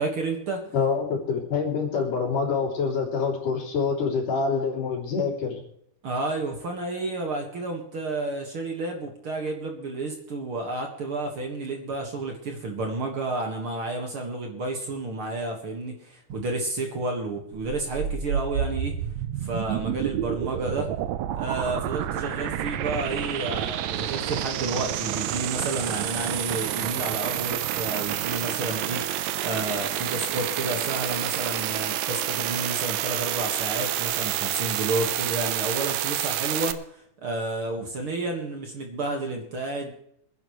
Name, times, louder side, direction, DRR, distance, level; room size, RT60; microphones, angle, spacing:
voice 1, 0.0-0.6 6.0-18.9 19.4-20.9 21.3-29.0 29.4-39.9, right 2 dB, 45° right, 2 dB, 2.2 m, -31 dB
voice 2, 0.7-5.6, left 5 dB, 75° left, -1 dB, 4.7 m, -26 dB
sound 1, 17.6-36.7, right 11 dB, 75° right, 1.7 m, -29 dB
26.0 x 10.5 x 3.2 m, 0.69 s
omnidirectional pair, 3.7 m